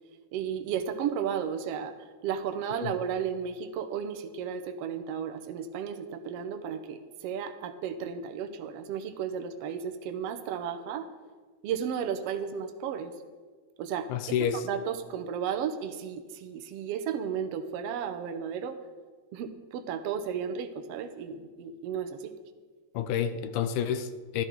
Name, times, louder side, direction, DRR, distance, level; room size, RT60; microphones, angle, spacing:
voice 1, 0.3-1.9 2.2-11.1 11.6-13.1 13.8-14.1 14.6-18.8 19.3-22.3, right 7 dB, 65° right, 8 dB, 1.6 m, -34 dB
voice 2, 14.1-14.6 22.9-24.4, left 8 dB, 80° left, 11 dB, 2.1 m, -29 dB
13.0 x 12.5 x 4.7 m, 1.5 s
omnidirectional pair, 3.7 m